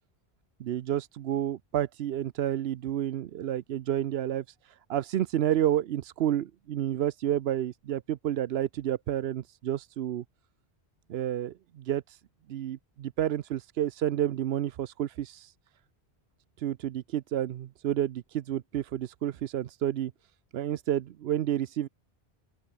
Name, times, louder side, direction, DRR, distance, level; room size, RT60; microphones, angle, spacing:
voice 1, 0.6-10.2 11.1-12.2 12.5-15.5 16.6-20.1 20.5-21.9, right 11 dB, 80° right, 0.9 m, -30 dB
open air
omnidirectional pair, 1.1 m